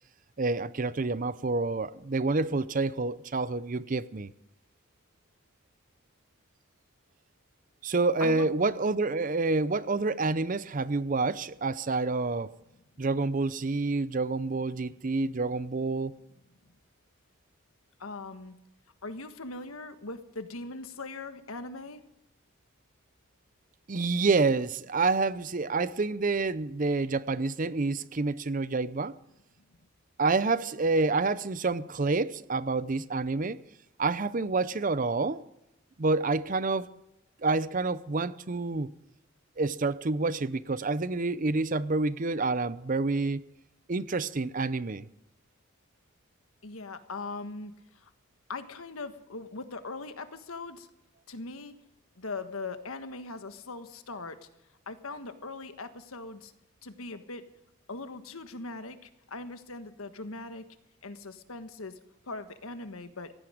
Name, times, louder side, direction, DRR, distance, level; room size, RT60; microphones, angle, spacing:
voice 1, 0.4-4.3 7.8-12.5 13.0-16.1 23.9-29.1 30.2-33.6 34.0-35.4 36.0-36.9 37.4-38.9 39.6-43.4 43.9-45.1, right 3 dB, 40° right, 0.6 m, -28 dB
voice 2, 8.2-8.5 18.0-18.5 19.0-22.0 46.6-48.1 48.5-50.9 51.3-51.7 52.2-54.5 54.9-56.5 56.8-57.4 57.9-60.6 61.0-62.0 62.2-63.3, left 3 dB, 85° left, 1.4 m, -40 dB
17.5 x 15.0 x 5.1 m
head